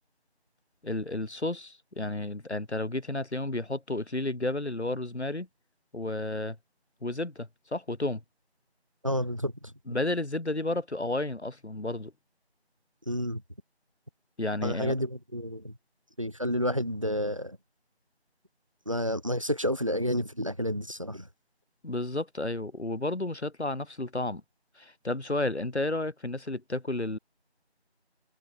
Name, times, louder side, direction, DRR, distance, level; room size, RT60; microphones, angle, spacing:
voice 1, 0.8-5.5 5.9-6.6 7.0-8.2 9.9-12.1 14.4-14.9 21.8-24.4 24.8-27.2, left 2 dB, 80° left, 1.8 m, -32 dB
voice 2, 9.0-9.5 13.1-13.4 14.6-15.7 16.2-17.6 18.9-21.3, equal, 30° right, 2.8 m, -30 dB
figure-of-eight pair, 180°, 33 cm